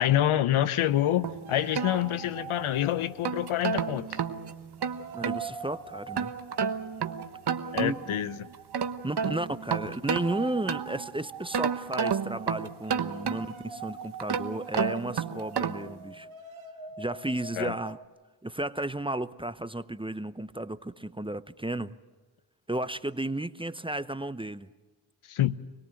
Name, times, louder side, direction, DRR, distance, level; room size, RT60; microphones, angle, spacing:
voice 1, 0.0-4.2 7.7-8.4 17.6-17.7 25.3-25.6, left 12 dB, 75° left, 0.9 m, -26 dB
sound 1, 0.8-4.3 4.7-18.0, right 6 dB, 70° right, 2.0 m, -45 dB
sound 2, 1.2-2.6 3.0-5.5 6.2-8.2 8.5-11.1 11.5-13.7 14.2-16.0, right 6 dB, 50° right, 1.1 m, -31 dB
voice 2, 5.1-6.3 7.8-8.2 9.0-16.3 17.0-18.0 18.4-22.0 22.7-24.7, right 1 dB, 10° right, 0.8 m, -33 dB
26.0 x 18.0 x 7.8 m
cardioid pair, 50°, 49 cm